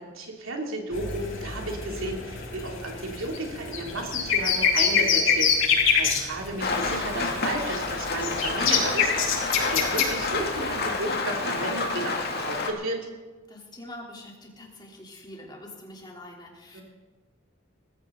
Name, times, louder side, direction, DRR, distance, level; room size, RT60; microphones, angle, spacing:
voice 1, 0.0-13.0 16.7-16.8, right 1 dB, 85° right, 0 dB, 2.9 m, -33 dB
sound 1, 0.9-10.9, left 6 dB, 75° left, 6.3 m, -26 dB
Rain, 6.6-12.7, left 3 dB, 50° left, 2.2 m, -29 dB
voice 2, 13.5-16.8, left 1 dB, 20° left, -2 dB, 3.3 m, -44 dB
19.5 x 15.5 x 3.9 m, 1.3 s
head